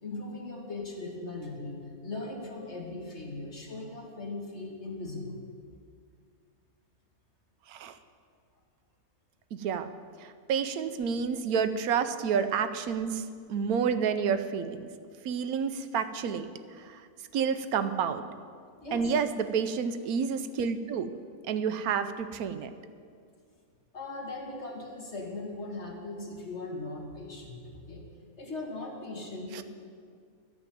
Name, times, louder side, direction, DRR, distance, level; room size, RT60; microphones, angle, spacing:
voice 1, 0.0-5.4 18.8-19.1 23.9-28.1 28.4-29.6, left 2 dB, 50° left, -1 dB, 2.1 m, -39 dB
voice 2, 9.5-9.9 10.2-13.2 13.5-14.9 15.2-16.5 16.7-17.0 17.3-18.2 18.9-21.1 21.5-22.7 29.5-29.6, right 6 dB, 85° right, 10 dB, 1.2 m, -29 dB
13.0 x 6.0 x 9.2 m, 2.2 s
omnidirectional pair, 1.5 m